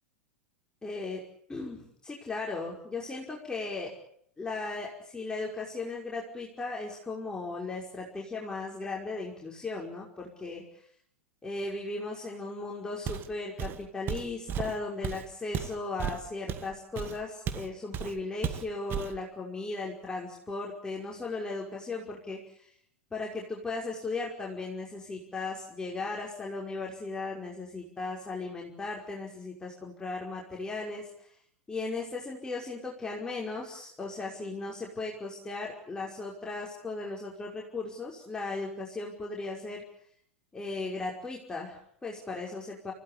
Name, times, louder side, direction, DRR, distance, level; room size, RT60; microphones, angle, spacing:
voice 1, 0.8-1.2 1.5-3.9 4.4-10.8 11.4-22.7 23.1-31.3 31.7-39.8 40.5-42.9, left 3 dB, 10° left, -2 dB, 5.6 m, -37 dB
Walk footsteps, 13.1-13.3 13.6-17.7 17.9-18.2 18.4-19.2, right 8 dB, 30° right, 2.1 m, -34 dB
30.0 x 17.0 x 8.7 m, 0.67 s
figure-of-eight pair, 95°, 7 cm